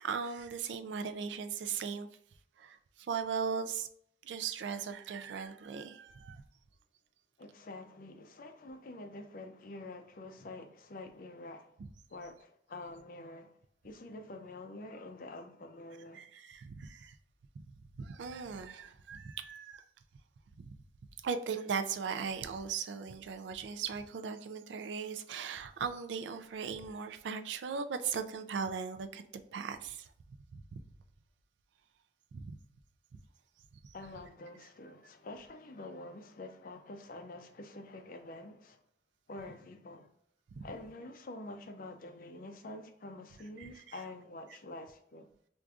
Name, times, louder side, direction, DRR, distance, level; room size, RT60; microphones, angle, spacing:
voice 1, 0.0-2.1 2.6-3.9 4.2-6.4 16.1-17.2 18.0-19.8 20.6-20.7 21.2-29.2 29.5-30.1 30.5-30.6 32.3-32.6 33.1-33.2 33.8-33.9 40.6-40.7 43.6-43.9, right 6 dB, 75° right, 0.4 m, -38 dB
voice 2, 7.4-11.8 12.1-13.6 13.8-16.2 33.9-38.8 39.3-40.1 40.6-45.3, left 2 dB, 50° left, 0.4 m, -47 dB
4.6 x 2.5 x 2.3 m
head